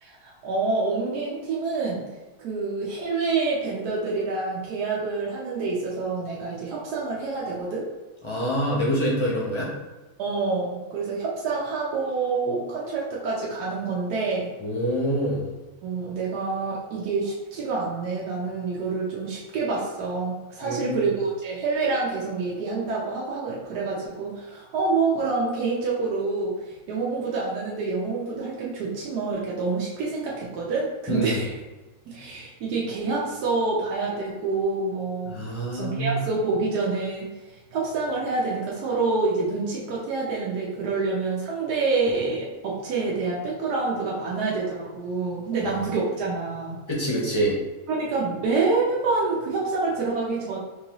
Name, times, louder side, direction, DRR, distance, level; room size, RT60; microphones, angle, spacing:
voice 1, 0.0-2.0 2.4-7.8 10.2-14.5 15.8-31.6 32.1-35.3 35.7-46.8 47.9-50.6, right 3 dB, 80° right, -5 dB, 1.3 m, -27 dB
voice 2, 8.2-9.7 14.6-15.5 20.6-21.0 31.1-31.4 35.3-36.2 45.7-45.8 46.9-47.6, equal, 35° left, -4 dB, 0.4 m, -26 dB
4.5 x 2.7 x 2.9 m, 1.2 s
omnidirectional pair, 1.7 m